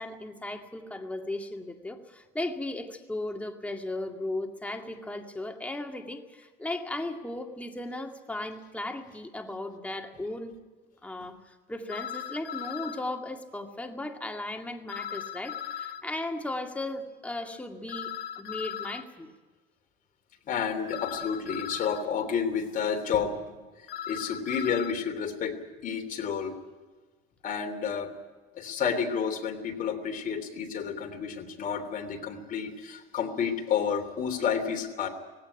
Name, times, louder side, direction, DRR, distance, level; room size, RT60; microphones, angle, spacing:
voice 1, 0.0-10.5 11.0-19.3, left 2 dB, 5° left, 3 dB, 2.2 m, -36 dB
sound 1, 11.9-13.0 14.9-16.0 17.9-19.0 20.9-22.0 23.9-24.9, left 10 dB, 60° left, 1.4 m, -37 dB
voice 2, 20.5-23.6 24.1-26.6 27.4-28.1 28.5-35.1, left 7 dB, 45° left, 6 dB, 3.2 m, -30 dB
18.5 x 17.0 x 10.0 m, 1.3 s
cardioid pair, 125°, 19 cm